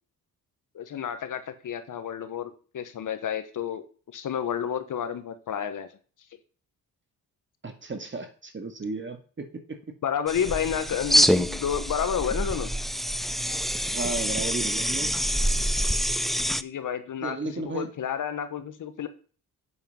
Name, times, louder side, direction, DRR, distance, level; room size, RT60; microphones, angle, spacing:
voice 1, 0.7-3.8 4.1-5.9 10.0-12.7 16.6-17.4 17.6-19.1, left 8 dB, 60° left, 10 dB, 1.3 m, -30 dB
voice 2, 7.6-9.8 13.8-15.1 17.2-17.9, right 3 dB, 35° right, 6 dB, 1.9 m, -34 dB
sound 1, 10.3-16.6, equal, ahead, 0.5 m, -26 dB
8.7 x 6.8 x 5.4 m, 0.39 s
cardioid pair, 80°, 35 cm